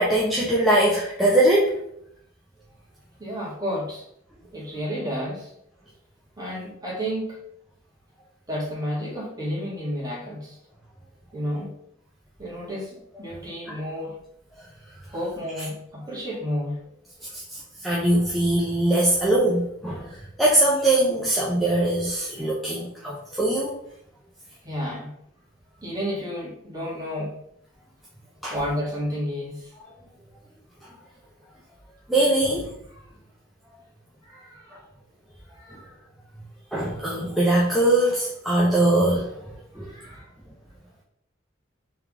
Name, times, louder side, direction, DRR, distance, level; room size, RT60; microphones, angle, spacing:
voice 1, 0.0-1.7 17.3-17.4 17.8-20.1 20.4-23.7 28.4-28.5 32.1-32.7 36.7-39.3 39.8-39.9, right 1 dB, ahead, -6 dB, 0.6 m, -21 dB
voice 2, 3.2-4.0 4.5-5.5 6.4-7.4 8.5-10.6 11.3-11.7 12.4-14.2 15.1-16.9 24.6-25.1 25.8-27.4 28.5-29.7 32.9-33.0 34.2-34.8 35.5-35.9 39.7-40.3, equal, 20° right, -6 dB, 1.7 m, -31 dB
3.5 x 3.5 x 3.5 m, 0.73 s
head